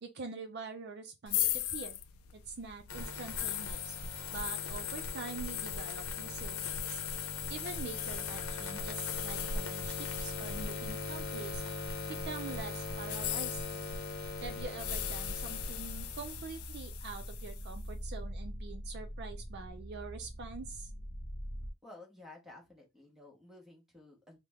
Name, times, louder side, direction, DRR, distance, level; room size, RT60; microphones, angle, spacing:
voice 1, 0.0-2.0 2.3-4.0 4.3-7.0 7.5-11.6 12.2-13.9 14.4-20.9, right 4 dB, 50° right, 0.4 m, -45 dB
sound 1, 1.3-12.2 13.0-17.8, left 10 dB, 80° left, 0.4 m, -40 dB
sound 2, 2.9-16.7, left 3 dB, 65° left, 0.8 m, -40 dB
sound 3, 14.8-21.7, equal, 35° left, 0.9 m, -43 dB
voice 2, 21.8-24.4, left 2 dB, ahead, 1.0 m, -53 dB
3.3 x 2.1 x 3.5 m
head